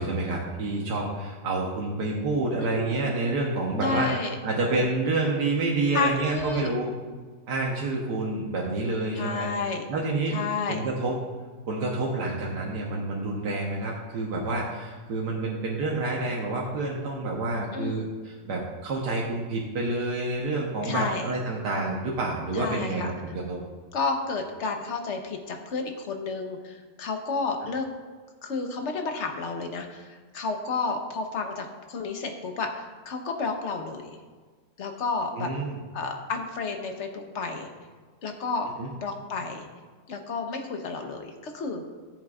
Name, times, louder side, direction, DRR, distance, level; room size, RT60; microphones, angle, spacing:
voice 1, 0.0-4.1 4.4-6.9 7.5-9.5 9.9-10.4 10.7-11.2 11.7-23.6 35.3-35.8 38.8-38.9, right 2 dB, 90° right, -3 dB, 1.6 m, -28 dB
voice 2, 2.6-3.0 3.7-4.4 5.9-6.7 9.1-9.8 10.3-10.8 17.7-18.1 20.8-21.3 22.5-23.1 23.9-27.8 28.4-34.2 34.8-35.5 35.9-37.7 38.2-38.7 39.0-39.7 40.1-41.8, left 4 dB, 50° left, 4 dB, 1.2 m, -31 dB
14.5 x 7.7 x 2.4 m, 1.5 s
omnidirectional pair, 1.7 m